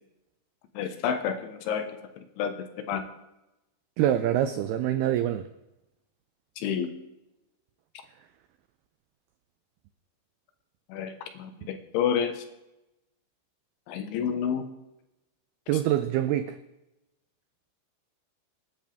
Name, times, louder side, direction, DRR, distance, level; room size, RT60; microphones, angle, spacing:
voice 1, 0.8-1.9 2.2-3.1 6.6-6.9 10.9-12.4 13.9-14.7, left 8 dB, 85° left, 7 dB, 3.7 m, -29 dB
voice 2, 4.0-5.5 15.7-16.6, right 12 dB, 85° right, 10 dB, 2.2 m, -25 dB
26.5 x 10.5 x 3.5 m, 0.94 s
omnidirectional pair, 5.4 m